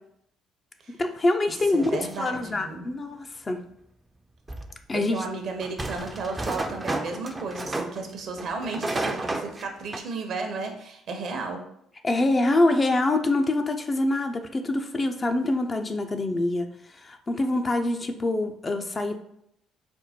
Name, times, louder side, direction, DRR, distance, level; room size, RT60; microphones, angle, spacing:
voice 1, 0.9-3.6 4.9-5.2 12.0-16.7 17.0-19.2, left 2 dB, 30° left, 5 dB, 0.5 m, -25 dB
sound 1, 1.7-2.5 4.5-4.7 5.6-8.0 8.4-9.6 9.9-10.0, right 2 dB, 20° right, 0.5 m, -32 dB
voice 2, 1.7-2.9 4.9-11.6, right 3 dB, 60° right, 4 dB, 0.8 m, -33 dB
4.4 x 2.1 x 4.2 m, 0.74 s
hypercardioid pair, 55°, 0 cm